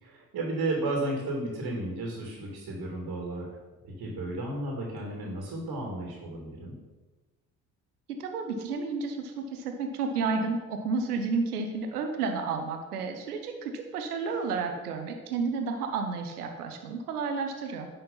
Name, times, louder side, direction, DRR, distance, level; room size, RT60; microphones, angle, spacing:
voice 1, 0.0-3.5 3.8-6.7, right 2 dB, 50° right, -1 dB, 2.9 m, -33 dB
voice 2, 8.1-17.9, right 4 dB, 90° right, 5 dB, 1.0 m, -31 dB
10.5 x 5.6 x 5.6 m, 1.2 s
hypercardioid pair, 55°, 44 cm